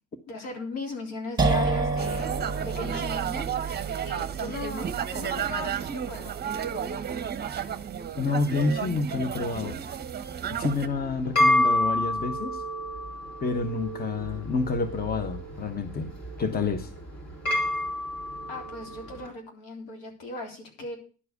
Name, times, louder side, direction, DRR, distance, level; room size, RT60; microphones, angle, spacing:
voice 1, 0.3-3.5 4.0-6.3 18.5-21.0, left 2 dB, 70° left, 1 dB, 3.5 m, -37 dB
sound 1, 1.4-8.9, right 4 dB, 10° right, 2.0 m, -31 dB
sound 2, 2.0-10.9, right 8 dB, 25° right, 1.0 m, -32 dB
voice 2, 8.2-9.8 10.5-12.6 13.4-16.1 16.4-16.9, left 4 dB, 25° left, 8 dB, 1.3 m, -28 dB
sound 3, 10.7-19.2, left 1 dB, 45° left, 3.9 m, -29 dB
11.0 x 4.7 x 8.1 m, 0.38 s
hypercardioid pair, 75°, 36 cm